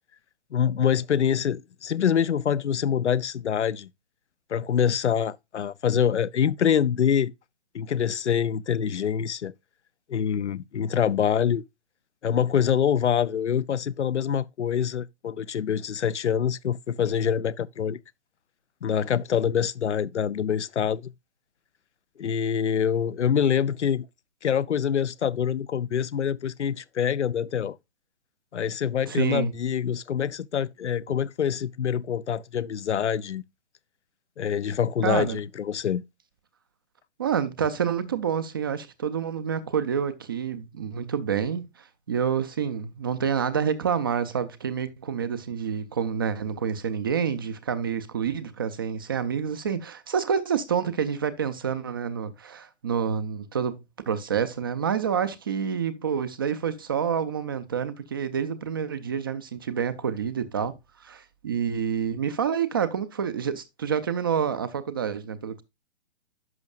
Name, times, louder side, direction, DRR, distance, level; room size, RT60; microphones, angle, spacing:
voice 1, 0.5-3.9 4.5-7.3 7.7-9.5 10.1-11.6 12.2-18.0 18.8-21.1 22.2-24.1 24.4-27.8 28.5-33.4 34.4-36.0, left 8 dB, 85° left, 0.5 m, -25 dB
voice 2, 29.1-29.6 35.0-35.4 37.2-65.6, right 7 dB, 20° right, 0.4 m, -28 dB
11.0 x 6.1 x 2.3 m
figure-of-eight pair, 130°, 34 cm